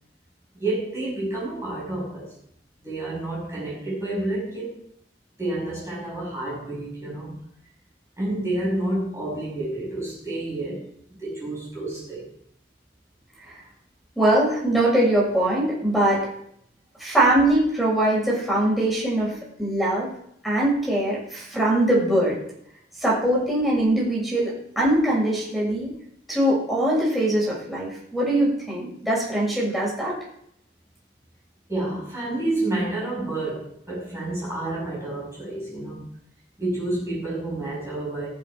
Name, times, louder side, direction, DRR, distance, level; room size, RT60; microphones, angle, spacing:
voice 1, 0.5-2.3 2.8-4.7 5.4-7.4 8.2-12.3 31.7-36.1 36.6-38.3, right 2 dB, 15° right, -6 dB, 6.3 m, -29 dB
voice 2, 14.1-16.3 17.0-20.1 20.4-22.4 23.0-25.9 26.3-30.2, right 1 dB, ahead, -7 dB, 6.8 m, -22 dB
24.0 x 8.2 x 5.0 m, 0.72 s
head